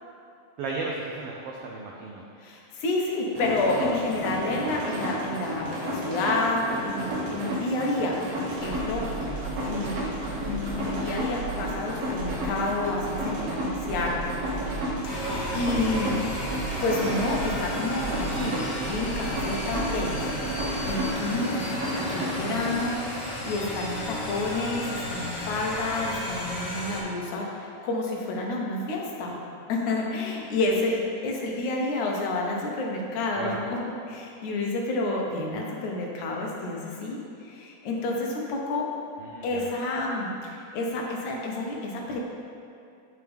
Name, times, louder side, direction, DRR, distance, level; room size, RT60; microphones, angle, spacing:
voice 1, 0.6-2.2 9.7-10.0 33.3-33.6 39.2-39.7, right 3 dB, 85° right, -2 dB, 1.3 m, -35 dB
voice 2, 2.4-9.3 9.6-10.1 10.4-14.2 15.2-16.1 16.8-20.2 20.9-21.6 21.9-23.0 23.4-29.4 29.7-33.8 34.1-38.8 39.4-42.2, left 2 dB, 85° left, -1 dB, 2.3 m, -29 dB
sound 1, 3.3-22.8, equal, 70° right, 1.8 m, -32 dB
sound 2, 8.5-21.1, right 3 dB, 50° right, 0.7 m, -38 dB
sound 3, 15.0-27.0, left 1 dB, 50° left, 1.3 m, -34 dB
10.5 x 3.6 x 3.4 m, 2.6 s
omnidirectional pair, 3.3 m